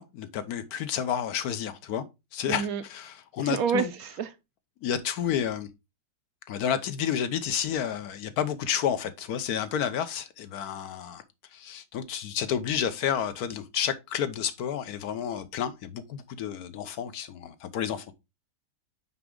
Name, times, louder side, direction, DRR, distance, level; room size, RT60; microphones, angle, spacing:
voice 1, 0.0-2.0 2.3-3.9 4.8-5.7 6.5-11.2 11.5-18.1, left 9 dB, 65° left, 1.2 m, -30 dB
voice 2, 2.5-2.8 3.4-4.3, right 7 dB, 65° right, 1.0 m, -28 dB
6.0 x 4.6 x 3.7 m
omnidirectional pair, 1.8 m